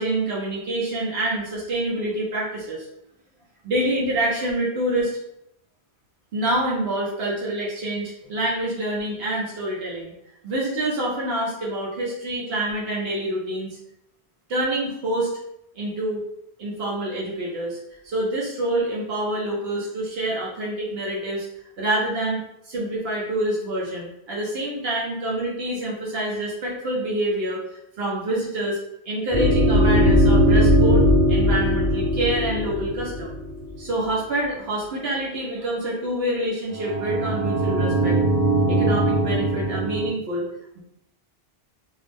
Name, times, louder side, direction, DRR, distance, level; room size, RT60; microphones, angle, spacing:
voice 1, 0.0-2.8 3.6-5.1 6.3-10.1 10.4-13.7 14.5-15.3 15.7-16.2 16.6-17.8 18.0-21.5 21.8-28.8 29.0-33.3 33.8-38.2 38.7-40.5 40.8-40.9, right 1 dB, 75° right, -5 dB, 1.1 m, -26 dB
sound 1, 29.3-33.7 36.7-40.1, equal, 40° right, 0.9 m, -20 dB
2.7 x 2.0 x 3.3 m, 0.79 s
omnidirectional pair, 1.1 m